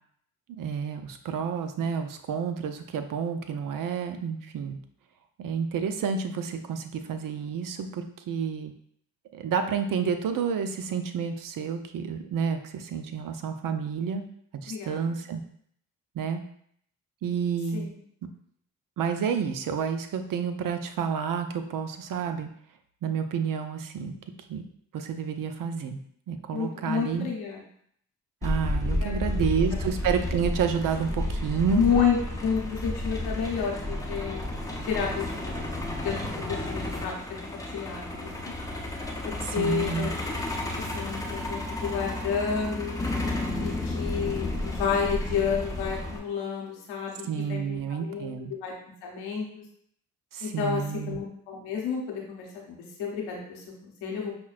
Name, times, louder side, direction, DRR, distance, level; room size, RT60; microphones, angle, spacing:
voice 1, 0.5-4.8 5.4-8.7 9.3-14.2 14.5-15.4 16.2-16.4 17.2-17.9 19.0-22.5 23.0-24.1 24.5-24.6 24.9-26.0 26.3-27.3 28.4-31.8 39.6-40.1 47.3-48.5 50.3-51.2, right 6 dB, 60° right, 7 dB, 0.5 m, -30 dB
voice 2, 14.7-15.0 17.7-18.0 26.5-27.6 28.8-29.4 31.7-34.4 34.8-35.6 36.0-37.1 37.4-38.3 39.2-40.1 40.8-42.9 43.6-48.3 48.6-48.7 49.0-49.6 50.4-54.3, left 6 dB, 90° left, -1 dB, 0.9 m, -30 dB
Truck, 28.4-46.2, left 1 dB, 10° left, 0.7 m, -32 dB
5.6 x 2.2 x 2.4 m, 0.66 s
supercardioid pair, 50°, 38 cm